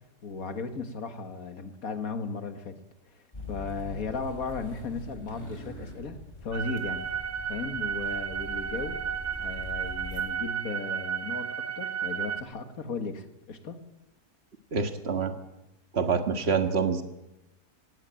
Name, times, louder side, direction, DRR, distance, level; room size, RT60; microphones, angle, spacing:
voice 1, 0.2-2.8 3.5-7.1 7.5-9.0 9.4-13.8, left 4 dB, 60° left, 8 dB, 2.1 m, -36 dB
sound 1, 3.3-10.2, left 1 dB, 25° left, 4.3 m, -43 dB
sound 2, 6.5-12.4, right 8 dB, 75° right, 1.9 m, -33 dB
voice 2, 14.7-15.3 15.9-17.0, right 5 dB, 40° right, 7 dB, 1.8 m, -26 dB
18.5 x 17.0 x 8.9 m, 0.93 s
omnidirectional pair, 1.7 m